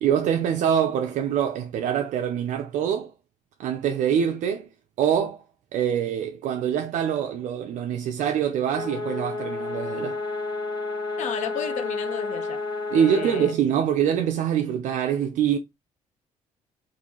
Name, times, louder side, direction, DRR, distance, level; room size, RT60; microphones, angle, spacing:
voice 1, 0.0-3.1 3.6-4.7 5.0-5.4 5.7-10.2 12.9-15.6, right 9 dB, 75° right, 0.5 m, -24 dB
sound 1, 8.7-13.6, left 3 dB, 35° left, 1.5 m, -31 dB
voice 2, 11.2-12.6 13.0-13.5, left 8 dB, 70° left, 0.7 m, -33 dB
3.7 x 2.6 x 2.9 m
cardioid pair, 95°, 13 cm